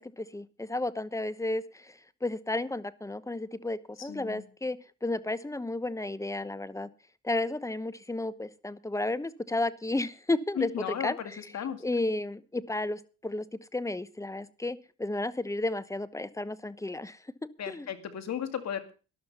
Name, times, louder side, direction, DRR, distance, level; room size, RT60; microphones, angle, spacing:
voice 1, 0.0-6.9 7.2-10.7 11.0-11.4 11.8-13.4 13.7-17.9, left 2 dB, 10° left, 17 dB, 1.0 m, -33 dB
voice 2, 4.0-4.4 10.6-11.8 17.6-18.9, left 9 dB, 60° left, 10 dB, 2.3 m, -35 dB
13.0 x 12.0 x 5.5 m, 0.35 s
cardioid pair, 90°, 30 cm